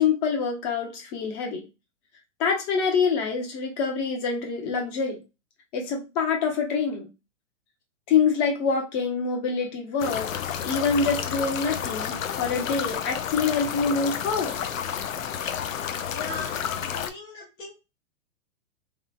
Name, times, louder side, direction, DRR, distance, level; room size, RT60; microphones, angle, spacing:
voice 1, 0.0-1.7 2.4-5.2 5.7-7.1 8.1-10.3 10.6-14.6 16.7-16.8, left 5 dB, 35° left, 1 dB, 1.0 m, -25 dB
sound 1, 10.0-17.1, left 8 dB, 80° left, 0.5 m, -31 dB
voice 2, 16.1-17.7, left 3 dB, 10° left, -4 dB, 0.4 m, -39 dB
3.2 x 2.3 x 2.2 m, 0.26 s
figure-of-eight pair, 115°, 40 cm